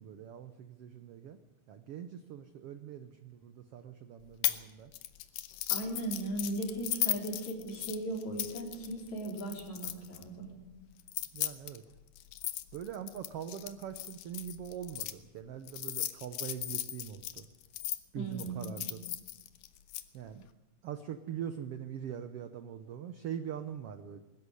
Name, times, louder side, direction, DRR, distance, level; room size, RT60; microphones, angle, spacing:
voice 1, 0.0-1.4 1.7-4.9 11.3-11.8 12.7-17.5 18.1-19.0 20.1-20.5 20.8-24.2, right 9 dB, 85° right, 9 dB, 1.3 m, -42 dB
sound 1, 4.4-4.6 4.9-10.2 11.0-15.1 15.7-18.0 18.4-20.0, left 14 dB, 90° left, 2.6 m, -36 dB
voice 2, 5.7-10.5 18.2-18.9, right 1 dB, 55° left, 1 dB, 5.2 m, -37 dB
21.0 x 13.0 x 9.9 m, 1.1 s
omnidirectional pair, 3.9 m